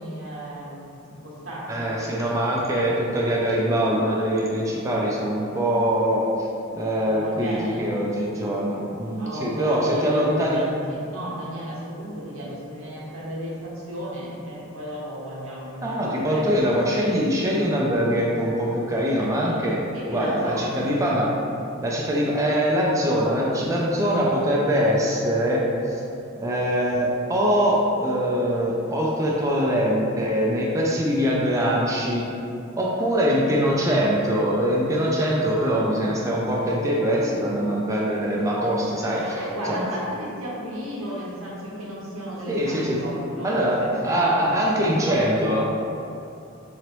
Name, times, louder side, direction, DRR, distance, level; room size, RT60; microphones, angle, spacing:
voice 1, 0.0-2.0 7.0-7.8 9.2-16.7 19.8-20.8 39.2-43.9 44.2-45.6, right 1 dB, 90° right, -6 dB, 1.0 m, -34 dB
voice 2, 1.7-6.5 6.7-10.6 15.8-19.8 20.1-21.4 21.8-26.0 26.4-32.3 32.8-39.4 39.7-39.9 42.5-43.0 43.4-45.6, equal, 15° right, -4 dB, 0.4 m, -23 dB
3.8 x 3.0 x 3.0 m, 2.6 s
head